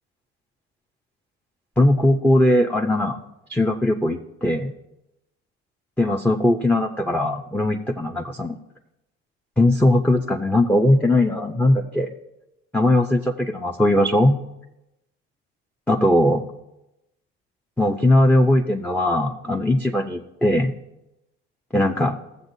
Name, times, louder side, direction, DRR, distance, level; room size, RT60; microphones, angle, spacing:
voice 1, 1.8-3.2 3.5-4.7 6.0-8.6 9.6-12.1 12.7-14.4 15.9-16.4 17.8-20.7 21.7-22.2, left 1 dB, 5° left, 4 dB, 0.7 m, -19 dB
16.0 x 7.2 x 2.7 m, 0.92 s
supercardioid pair, 70°, 31 cm